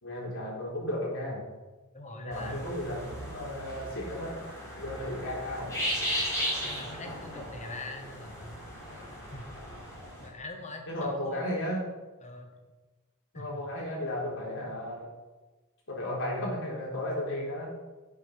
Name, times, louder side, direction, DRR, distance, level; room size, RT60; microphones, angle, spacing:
voice 1, 0.0-1.4 2.1-4.3 4.8-5.7 10.9-11.8 13.3-15.1 15.9-17.7, left 1 dB, 65° left, -3 dB, 3.8 m, -34 dB
voice 2, 1.9-2.7 6.6-8.6 8.9-9.6 10.2-11.6 12.2-12.5 13.3-13.6, left 2 dB, 35° left, 4 dB, 1.5 m, -43 dB
sound 1, 2.3-10.3, equal, 15° left, 3.9 m, -36 dB
11.0 x 7.6 x 5.2 m, 1.2 s
head